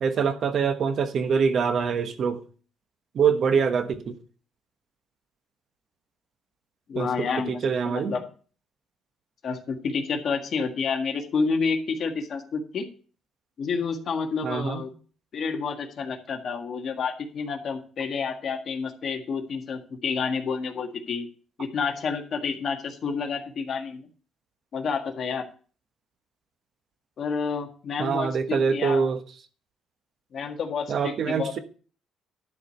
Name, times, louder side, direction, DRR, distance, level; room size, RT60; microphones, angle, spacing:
voice 1, 0.0-2.4 3.1-4.2 6.9-8.1 14.4-14.8 28.0-29.2 30.9-31.6, right 6 dB, 50° right, 1.2 m, -24 dB
voice 2, 6.9-7.6 7.9-8.3 9.4-12.9 13.6-14.9 15.3-21.3 21.6-24.1 24.7-25.5 27.2-29.1 30.3-31.6, left 5 dB, 50° left, 1.7 m, -29 dB
12.0 x 4.9 x 6.9 m
cardioid pair, 135°, 0 cm